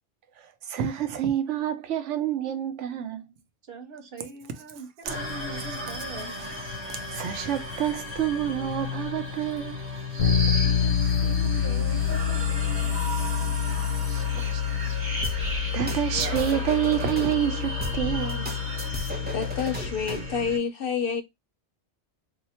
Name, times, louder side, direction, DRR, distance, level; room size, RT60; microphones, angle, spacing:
voice 1, 0.4-3.2 5.1-5.2 6.9-9.8 14.0-14.6 15.4-18.8, right 10 dB, 85° right, 1.0 m, -28 dB
voice 2, 3.7-6.3 10.2-13.6, right 3 dB, 55° right, 0.8 m, -43 dB
sound 1, 5.0-20.6, left 1 dB, 40° right, 1.3 m, -34 dB
Bass guitar, 10.2-20.0, left 9 dB, 85° left, 1.0 m, -27 dB
sound 2, 15.2-17.3 17.8-20.3, right 1 dB, 15° right, 0.4 m, -35 dB
voice 3, 19.3-21.2, left 6 dB, 60° left, 0.6 m, -28 dB
2.8 x 2.1 x 4.1 m
omnidirectional pair, 1.2 m